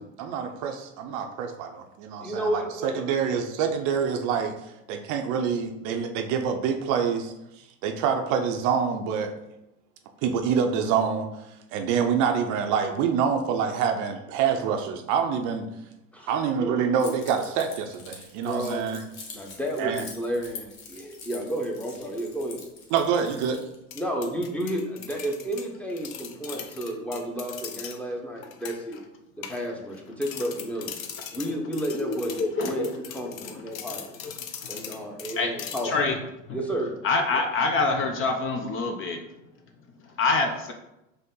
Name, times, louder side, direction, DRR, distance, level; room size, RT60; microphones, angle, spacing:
voice 1, 0.0-4.5 4.9-9.4 10.2-11.3 11.7-15.7 16.3-19.0 19.8-20.0 22.9-23.6, right 7 dB, 50° right, 5 dB, 0.6 m, -26 dB
voice 2, 2.2-3.1 16.1-16.8 18.4-18.8 19.3-22.6 23.9-29.0 29.4-31.0 31.3-34.2 34.7-35.9 36.5-36.9 40.4-40.5, right 1 dB, 5° left, 0 dB, 0.8 m, -32 dB
Keys jangling, 17.0-23.8, left 5 dB, 60° left, 1.2 m, -45 dB
sound 1, 23.9-28.0 28.4-29.0 29.4-29.9 30.2-36.0, left 8 dB, 85° left, 0.5 m, -40 dB
voice 3, 31.9-32.9 33.2-34.0 34.2-34.3 34.6-35.0 35.4-36.2 36.5-36.6 37.0-39.2 40.0-40.7, left 3 dB, 35° left, 4 dB, 0.5 m, -27 dB
5.3 x 2.1 x 3.7 m, 0.90 s
hypercardioid pair, 80°, 39 cm